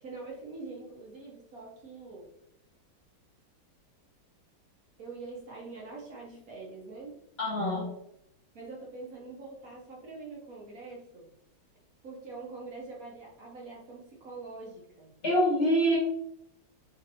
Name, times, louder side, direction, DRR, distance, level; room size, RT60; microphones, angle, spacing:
voice 1, 0.0-2.3 5.0-7.1 8.5-11.3 12.0-15.1, right 3 dB, 60° right, -3 dB, 1.1 m, -44 dB
voice 2, 7.4-7.9 15.2-16.0, equal, 45° left, -5 dB, 0.9 m, -25 dB
4.0 x 3.2 x 2.6 m, 0.76 s
omnidirectional pair, 2.0 m